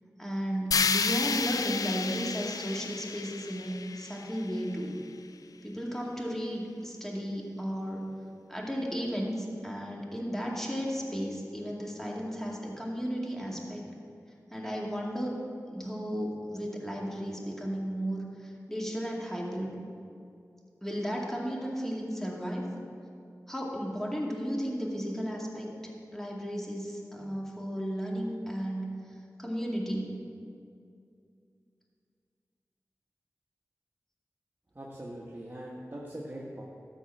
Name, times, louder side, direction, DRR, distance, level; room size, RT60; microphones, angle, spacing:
voice 1, 0.2-4.9 5.6-8.1 8.5-13.8 14.5-15.4 15.7-19.7 20.8-22.6 23.5-28.9 29.4-30.2, equal, 5° left, -2 dB, 2.2 m, -34 dB
sound 1, 0.7-4.8, left 5 dB, 85° left, 0.3 m, -31 dB
voice 2, 34.7-36.6, right 1 dB, 35° right, -4 dB, 1.3 m, -41 dB
13.0 x 4.5 x 7.7 m, 2.4 s
cardioid pair, 45°, 6 cm